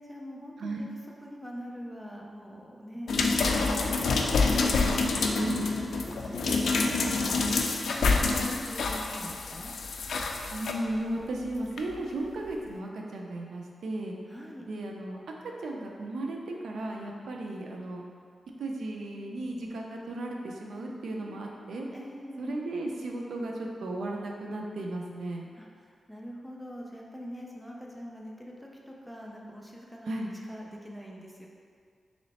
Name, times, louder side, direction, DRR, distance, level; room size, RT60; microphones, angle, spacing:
voice 1, 0.0-9.7 14.3-14.7 21.2-22.6 25.6-30.1 30.5-31.5, equal, ahead, -2 dB, 0.4 m, -44 dB
sound 1, 3.1-10.7 11.8-11.9, left 3 dB, 75° left, 0.3 m, -27 dB
voice 2, 5.4-5.7 10.5-14.2 14.6-18.0 18.6-21.9 22.4-25.5 30.1-30.3, right 1 dB, 85° right, 0 dB, 0.4 m, -35 dB
3.1 x 3.0 x 4.1 m, 2.1 s
wide cardioid pair, 165°, 0 cm